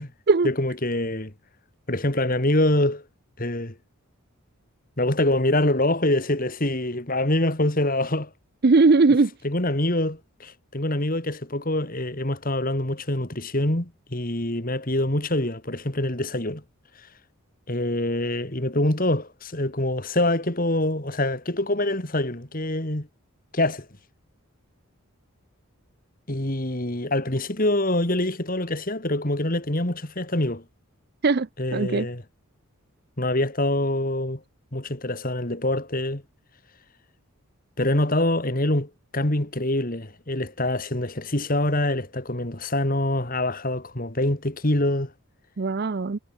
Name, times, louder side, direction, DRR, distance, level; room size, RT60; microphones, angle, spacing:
voice 1, 0.4-1.3 1.9-3.0 3.4-3.8 5.0-8.3 9.4-16.6 17.7-23.1 23.5-23.9 26.3-30.6 31.6-32.2 33.2-34.4 34.7-36.2 37.8-45.1, left 1 dB, 40° left, 2.5 m, -25 dB
voice 2, 8.6-9.3 31.2-32.1 45.6-46.2, right 3 dB, 45° right, 0.5 m, -19 dB
head